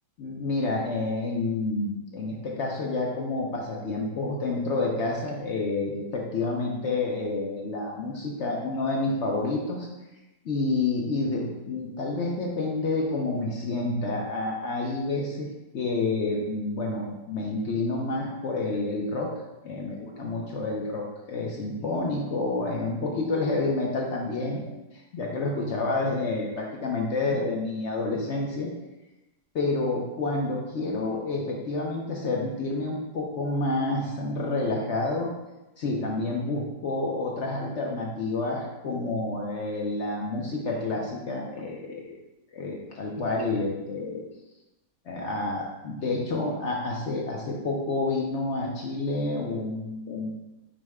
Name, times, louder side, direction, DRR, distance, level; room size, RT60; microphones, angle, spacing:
voice 1, 0.2-9.9 10.4-19.3 19.6-24.8 25.1-28.7 29.5-35.3 35.8-42.1 42.5-44.2 45.1-50.3, left 2 dB, 60° left, -1 dB, 0.7 m, -29 dB
5.2 x 2.2 x 4.7 m, 1.0 s
omnidirectional pair, 1.8 m